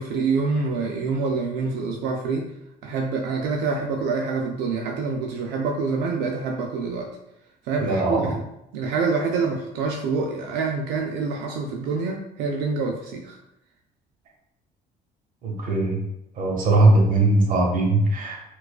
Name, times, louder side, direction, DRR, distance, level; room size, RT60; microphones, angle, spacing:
voice 1, 0.0-2.5 2.8-7.1 7.6-8.3 8.7-13.4, right 4 dB, 90° right, 1 dB, 0.4 m, -26 dB
voice 2, 7.8-8.3 15.4-16.0 16.3-18.4, right 2 dB, 55° right, -1 dB, 1.0 m, -20 dB
4.5 x 2.3 x 2.3 m, 0.84 s
cardioid pair, 110°, 17 cm